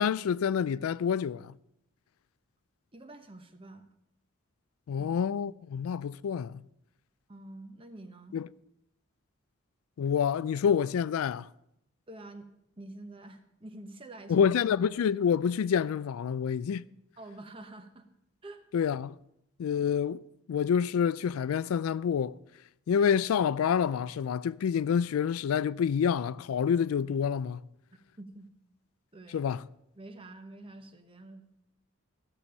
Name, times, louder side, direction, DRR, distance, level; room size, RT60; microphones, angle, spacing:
voice 1, 0.0-1.5 4.9-6.6 8.3-8.5 10.0-11.5 14.3-16.9 18.7-19.1 19.6-20.2 20.5-22.4 22.9-27.6 29.3-29.6, left 7 dB, 90° left, 0.3 m, -27 dB
voice 2, 2.9-3.8 5.0-5.2 7.3-8.4 12.1-12.5 12.8-14.5 17.2-18.1 18.4-18.7 28.2-28.5 29.1-29.5 30.0-31.5, right 2 dB, 25° right, 1.0 m, -47 dB
15.0 x 6.9 x 6.4 m
head